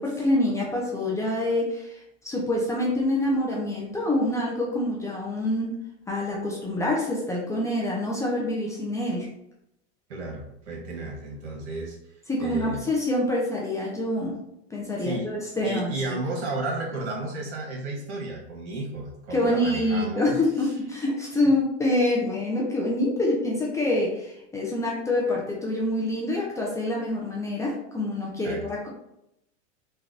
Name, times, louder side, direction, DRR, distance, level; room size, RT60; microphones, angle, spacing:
voice 1, 0.0-1.9 2.2-5.7 6.1-9.3 12.3-14.3 14.7-16.2 19.3-24.1 24.5-28.9, left 1 dB, 10° left, -3 dB, 0.4 m, -26 dB
voice 2, 10.1-12.0 12.4-12.8 15.0-20.7 28.4-28.6, right 2 dB, 80° right, -1 dB, 1.1 m, -33 dB
3.2 x 2.3 x 2.4 m, 0.81 s
supercardioid pair, 120°, 34 cm